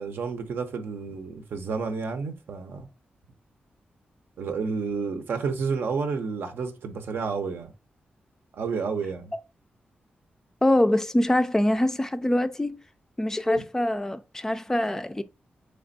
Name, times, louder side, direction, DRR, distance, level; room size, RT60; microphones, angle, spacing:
voice 1, 0.0-2.9 4.4-7.7 8.5-9.3, right 5 dB, 80° right, 0.6 m, -30 dB
voice 2, 10.6-12.8 13.2-15.2, left 1 dB, 15° left, 0.3 m, -24 dB
3.4 x 3.3 x 3.9 m
wide cardioid pair, 100°, 4 cm